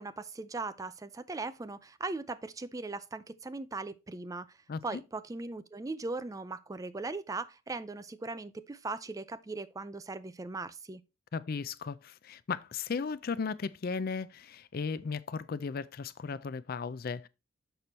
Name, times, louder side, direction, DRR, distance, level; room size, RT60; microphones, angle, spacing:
voice 1, 0.0-4.5 4.8-11.0, right 3 dB, 15° right, 0.4 m, -39 dB
voice 2, 4.7-5.0 11.3-17.3, left 5 dB, 50° left, 0.4 m, -36 dB
6.8 x 6.0 x 4.1 m
head